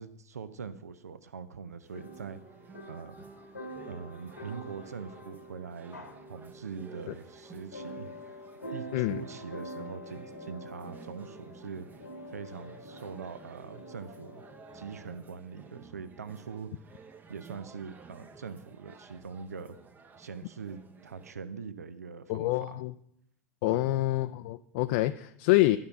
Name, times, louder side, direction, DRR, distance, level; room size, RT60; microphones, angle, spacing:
voice 1, 0.0-2.4 2.9-3.2 3.9-8.1 8.7-14.4 14.7-16.8 17.3-19.8 20.2-22.8 23.7-23.9, right 6 dB, 80° right, 14 dB, 0.5 m, -43 dB
sound 1, 1.8-21.3, right 5 dB, 20° right, 0.7 m, -52 dB
sound 2, 1.9-15.2, equal, 85° left, 1.3 m, -46 dB
voice 2, 22.3-22.9 23.6-25.8, left 17 dB, 50° left, 10 dB, 0.3 m, -26 dB
11.5 x 5.5 x 5.7 m, 0.75 s
figure-of-eight pair, 90°, 8 cm